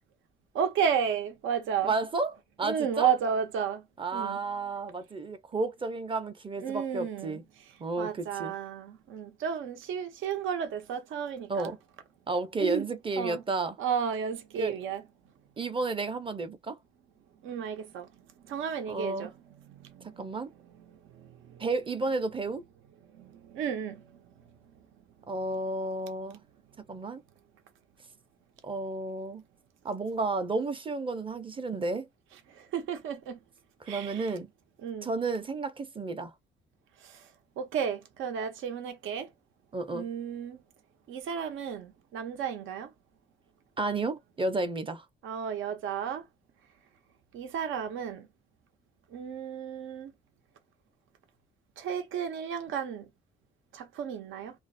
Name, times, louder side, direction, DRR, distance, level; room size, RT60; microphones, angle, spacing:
voice 1, 0.5-1.9 2.6-3.8 4.1-4.4 6.6-7.4 8.0-11.7 12.6-12.8 13.2-13.4 13.8-15.0 17.4-18.1 18.5-19.3 19.7-20.1 21.1-21.6 23.2-24.1 32.6-33.4 33.9-34.3 34.8-35.1 37.1-37.2 37.6-39.3 39.9-40.6 41.1-42.9 45.2-46.2 47.3-48.3 49.1-50.1 51.8-53.1 53.7-54.5, right 7 dB, 85° right, 0.6 m, -32 dB
voice 2, 1.8-3.1 4.0-7.4 7.8-8.5 11.5-11.8 12.3-13.8 14.6-14.8 15.6-16.8 18.9-19.3 20.0-20.5 21.6-22.6 25.3-26.4 26.9-27.2 28.6-29.4 29.8-32.1 33.8-34.5 35.0-36.3 39.7-40.1 43.8-45.0, right 3 dB, 25° right, 0.5 m, -32 dB
2.4 x 2.0 x 2.5 m
cardioid pair, 90°, 20 cm